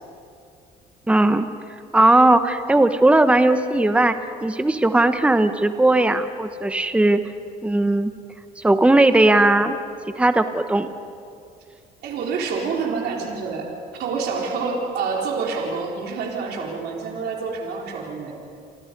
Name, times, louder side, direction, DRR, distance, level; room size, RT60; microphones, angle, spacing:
voice 1, 1.1-1.5 1.9-4.2 4.4-7.2 7.6-8.1 8.6-9.8 10.2-10.9, right 2 dB, 5° right, 9 dB, 1.0 m, -17 dB
voice 2, 12.0-13.7 13.9-18.3, right 5 dB, 75° right, -1 dB, 4.1 m, -27 dB
29.5 x 24.0 x 5.3 m, 2.4 s
cardioid pair, 110°, 17 cm